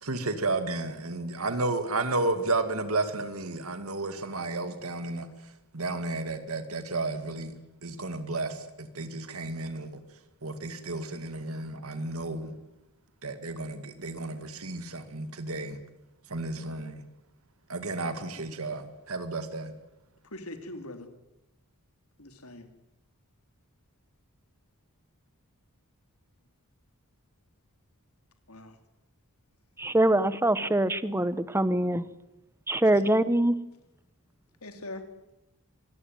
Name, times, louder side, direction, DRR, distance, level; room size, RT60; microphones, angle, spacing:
voice 1, 0.0-5.3 5.7-7.5 7.8-10.0 10.4-12.5 13.2-15.8 16.3-17.0 17.7-19.7, right 2 dB, 70° right, 2.3 m, -32 dB
voice 2, 20.2-21.1 22.2-22.7 28.5-28.8 32.9-33.0 34.6-35.0, left 2 dB, 75° left, 3.4 m, -42 dB
voice 3, 29.8-32.1 32.7-33.6, right 1 dB, 10° right, 1.0 m, -24 dB
25.5 x 19.5 x 9.4 m
head